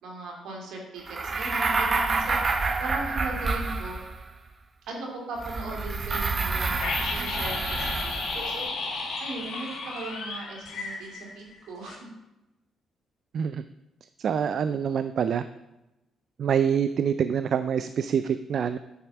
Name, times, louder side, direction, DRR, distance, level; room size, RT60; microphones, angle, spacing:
voice 1, 0.0-4.0 4.9-8.8 9.2-12.0, right 2 dB, 80° right, 0 dB, 2.4 m, -38 dB
sound 1, 1.1-4.3 5.4-8.5, right 3 dB, 40° right, 0.8 m, -28 dB
sound 2, 6.8-11.6 11.8-12.0, left 3 dB, 65° left, 2.4 m, -33 dB
voice 2, 14.2-15.4 16.4-18.8, right 7 dB, 60° right, 12 dB, 0.3 m, -26 dB
9.3 x 4.3 x 5.8 m, 0.96 s
cardioid pair, 80°, 0 cm